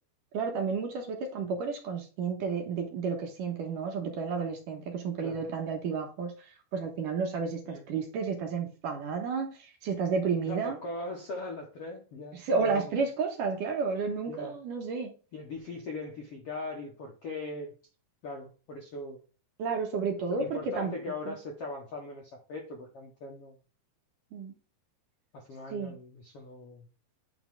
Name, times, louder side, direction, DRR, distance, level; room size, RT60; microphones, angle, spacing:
voice 1, 0.3-10.8 12.3-15.1 19.6-20.9 21.3-21.4 24.3-24.6 25.7-26.0, right 5 dB, 65° right, 2.6 m, -31 dB
voice 2, 10.4-12.9 14.3-14.5 15.3-17.7 18.2-19.2 20.3-23.6 25.3-26.9, left 2 dB, 65° left, 1.5 m, -40 dB
9.2 x 4.4 x 3.6 m
omnidirectional pair, 4.5 m